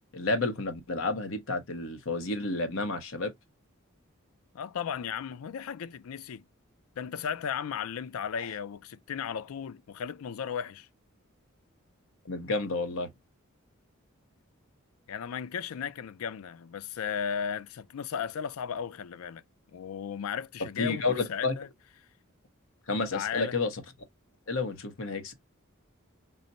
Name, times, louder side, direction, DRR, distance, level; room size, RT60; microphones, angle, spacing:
voice 1, 0.1-3.3 8.4-8.5 12.2-13.1 20.8-21.5 22.9-23.8 24.5-25.3, left 3 dB, 70° left, 0.9 m, -30 dB
voice 2, 4.5-6.5 7.0-10.9 15.1-19.4 19.7-21.0 21.3-21.7 23.1-23.6, left 7 dB, 85° left, 0.4 m, -35 dB
4.0 x 2.1 x 4.0 m
head